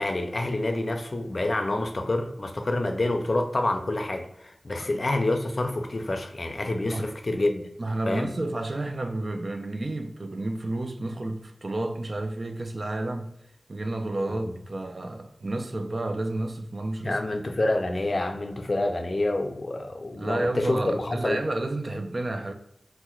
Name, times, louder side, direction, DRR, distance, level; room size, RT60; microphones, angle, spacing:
voice 1, 0.0-7.7 8.1-8.3 14.3-14.5 17.0-21.4, left 2 dB, 55° left, 0.4 m, -27 dB
voice 2, 6.9-7.2 7.8-13.4 13.7-17.2 20.2-22.5, right 2 dB, 55° right, 0.3 m, -31 dB
4.2 x 2.1 x 2.3 m
wide cardioid pair, 50°, 0 cm